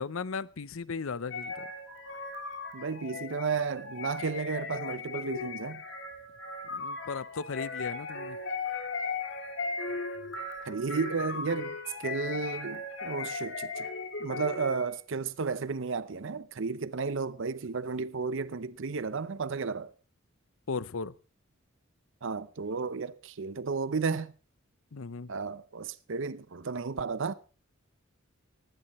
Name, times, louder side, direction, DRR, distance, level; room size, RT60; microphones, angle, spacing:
voice 1, 0.0-1.7 6.7-8.4 20.7-21.1 24.9-25.3, left 4 dB, 80° left, 0.7 m, -36 dB
sound 1, 1.3-15.0, left 3 dB, 65° left, 2.8 m, -37 dB
voice 2, 2.7-5.8 10.6-13.9 14.2-19.9 22.2-24.3 25.3-27.3, right 4 dB, 65° right, 0.7 m, -33 dB
18.0 x 16.0 x 3.1 m
head